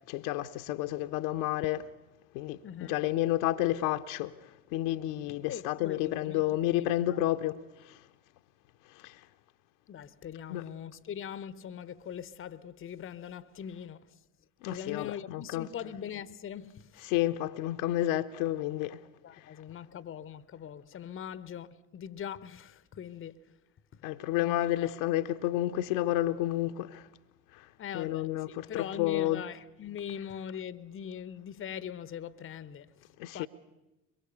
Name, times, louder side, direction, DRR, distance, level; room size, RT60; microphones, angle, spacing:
voice 1, 0.1-1.8 2.3-4.3 4.7-8.0 8.9-9.2 10.5-10.6 14.6-15.7 17.1-19.0 19.3-19.4 24.0-27.1 27.5-27.7 27.9-29.4 33.2-33.5, left 14 dB, 60° left, 0.9 m, -30 dB
voice 2, 2.6-3.0 5.5-6.5 6.8-7.2 9.9-14.2 14.6-17.1 19.2-23.6 23.9-24.0 24.4-24.9 27.8-32.9 33.3-33.5, left 9 dB, 25° left, 0.8 m, -41 dB
23.5 x 23.0 x 6.8 m
figure-of-eight pair, 55°, 46 cm